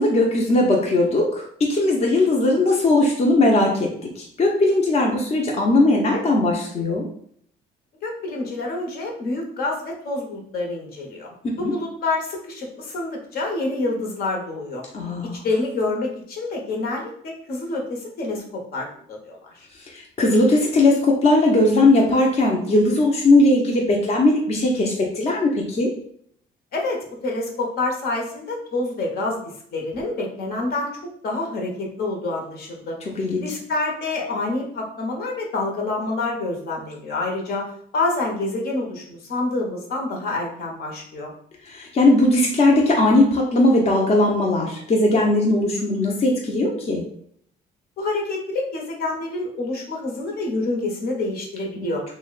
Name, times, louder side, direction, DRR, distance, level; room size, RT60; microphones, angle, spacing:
voice 1, 0.0-7.1 11.5-11.7 14.9-15.4 19.8-25.9 33.0-33.5 41.7-47.0 51.8-51.9, left 2 dB, 40° left, -1 dB, 0.7 m, -19 dB
voice 2, 8.0-11.3 11.5-14.8 15.2-19.7 26.7-29.4 29.7-30.9 31.2-33.0 33.4-41.3 48.0-52.0, left 2 dB, 65° left, 0 dB, 0.9 m, -27 dB
2.7 x 2.1 x 3.9 m, 0.64 s
cardioid pair, 95°, 17 cm